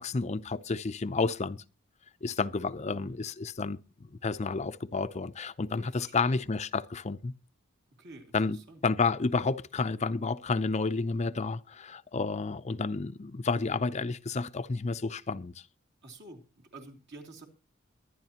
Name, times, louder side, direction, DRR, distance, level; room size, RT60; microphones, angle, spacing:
voice 1, 0.0-1.6 2.2-3.8 4.2-7.3 8.3-8.6 8.8-15.5, left 4 dB, 35° left, 0.5 m, -30 dB
voice 2, 5.8-6.4 7.9-8.8 16.0-17.5, right 2 dB, 55° right, 2.9 m, -50 dB
23.0 x 10.0 x 2.9 m
head